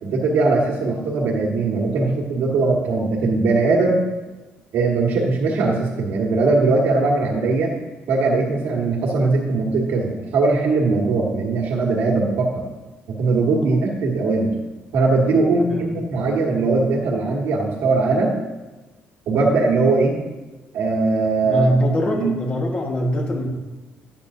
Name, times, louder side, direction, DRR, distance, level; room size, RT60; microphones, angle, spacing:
voice 1, 0.0-4.0 4.7-7.7 8.1-12.6 13.1-14.5 14.9-18.3 19.3-20.2 20.7-21.7 22.0-22.3, right 3 dB, 80° right, -2 dB, 1.6 m, -20 dB
voice 2, 21.4-23.5, equal, 30° left, 0 dB, 1.3 m, -23 dB
11.5 x 8.7 x 2.7 m, 1.2 s
cardioid pair, 165°, 4 cm